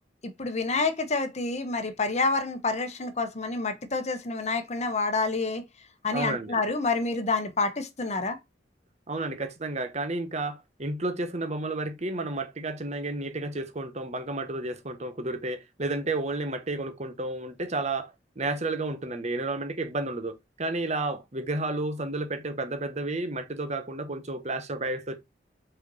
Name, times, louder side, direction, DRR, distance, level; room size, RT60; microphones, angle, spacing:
voice 1, 0.4-5.6 6.0-8.4, left 3 dB, 40° left, 1.0 m, -28 dB
voice 2, 6.1-6.6 9.1-18.1 18.4-25.2, right 2 dB, 40° right, 1.1 m, -31 dB
5.7 x 4.3 x 4.1 m
head